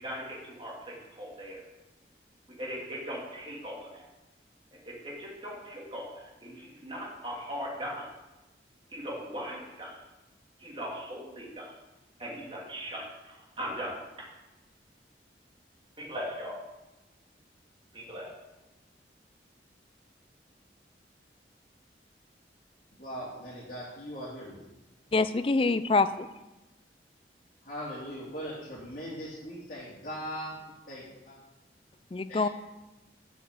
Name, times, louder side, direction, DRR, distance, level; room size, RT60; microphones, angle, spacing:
voice 1, 0.0-1.6 2.6-4.0 5.0-8.1 8.9-9.9 10.6-11.7 12.2-13.9 16.0-16.6 17.9-18.3, equal, 30° right, -4 dB, 2.8 m, -39 dB
voice 2, 23.0-24.6 27.6-30.5 30.9-31.4 32.3-32.4, equal, 50° left, -9 dB, 3.3 m, -40 dB
voice 3, 25.1-26.3 32.1-32.5, left 3 dB, 30° left, 12 dB, 0.4 m, -25 dB
7.8 x 6.2 x 7.7 m, 1.0 s
head